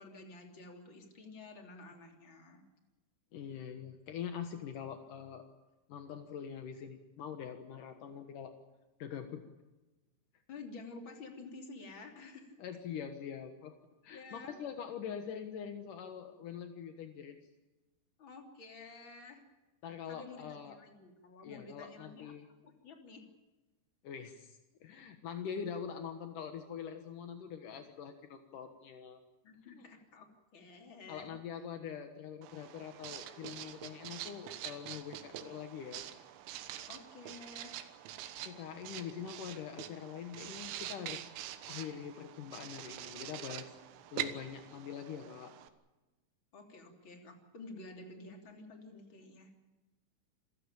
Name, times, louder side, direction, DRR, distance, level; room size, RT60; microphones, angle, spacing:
voice 1, 0.0-2.6 10.5-12.6 14.1-14.6 18.2-19.4 20.1-22.3 22.6-23.2 29.4-30.3 30.5-31.3 36.9-37.8 46.5-49.5, left 3 dB, 30° left, 3 dB, 3.0 m, -51 dB
voice 2, 3.3-5.5 5.9-8.5 9.0-9.4 12.6-13.8 14.0-17.4 19.8-20.8 21.4-22.5 24.0-29.2 29.8-29.9 31.1-36.0 38.4-41.3 41.7-43.8 44.1-45.5, left 8 dB, 80° left, 7 dB, 1.9 m, -44 dB
Writing, 32.4-45.7, right 12 dB, 75° right, 3.6 m, -45 dB
27.5 x 15.5 x 8.9 m, 1.1 s
omnidirectional pair, 5.9 m